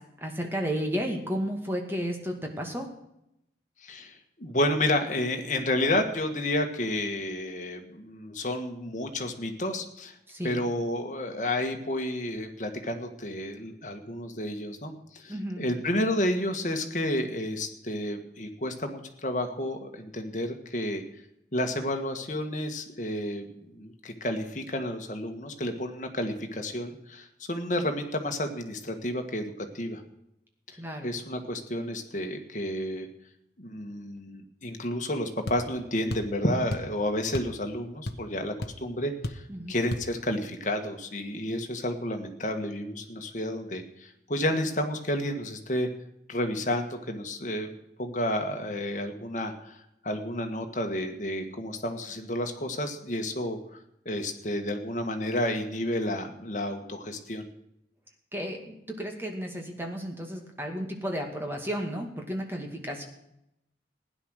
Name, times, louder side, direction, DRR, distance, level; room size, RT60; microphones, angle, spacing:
voice 1, 0.2-2.9 10.3-10.6 15.3-15.6 30.8-31.1 39.5-39.8 58.3-63.0, equal, 15° right, 2 dB, 2.2 m, -33 dB
voice 2, 3.8-10.2 10.4-21.0 21.5-30.0 30.7-33.1 33.6-45.9 46.3-47.7 48.0-49.8 50.0-53.6 54.1-57.5, left 1 dB, 45° left, 5 dB, 1.8 m, -31 dB
sound 1, 35.5-35.7 36.1-36.4 36.7-36.9 37.3-37.6 37.8-38.4 38.6-38.8 39.2-39.5 39.9-40.1, left 1 dB, 65° left, 1.1 m, -33 dB
16.0 x 10.5 x 6.5 m, 0.82 s
head